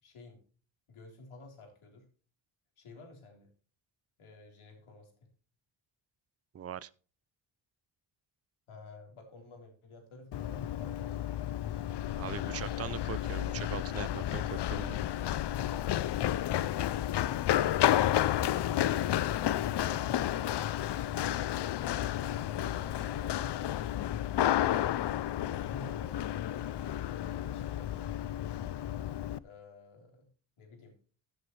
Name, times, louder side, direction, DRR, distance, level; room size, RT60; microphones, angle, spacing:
voice 1, 0.0-0.4 0.9-2.1 2.8-3.5 4.2-5.3 8.7-11.1 22.4-23.7 25.3-28.3 29.4-30.3 30.6-31.0, left 2 dB, 80° left, 3.8 m, -52 dB
voice 2, 6.5-6.9 12.2-15.0, right 9 dB, 30° right, 0.4 m, -41 dB
Run, 10.3-29.4, left 12 dB, 60° left, 0.5 m, -31 dB
15.0 x 8.0 x 3.2 m
wide cardioid pair, 135°, 48 cm